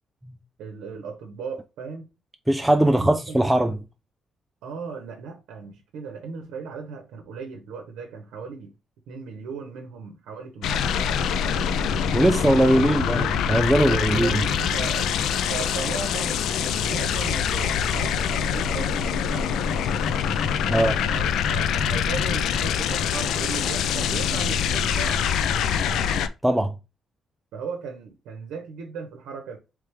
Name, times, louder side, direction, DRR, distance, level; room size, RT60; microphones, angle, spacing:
voice 1, 0.6-2.1 2.8-3.7 4.6-8.7 9.1-11.8 12.7-13.0 13.8-15.1 15.5-19.5 20.7-25.4 27.5-29.6, right 5 dB, 90° right, 0.7 m, -37 dB
voice 2, 2.5-3.8 12.1-14.4 20.7-21.0 26.4-26.7, right 1 dB, 5° right, 0.3 m, -20 dB
sound 1, 10.6-26.3, left 7 dB, 80° left, 0.3 m, -24 dB
3.3 x 3.3 x 3.2 m
cardioid pair, 90°, 0 cm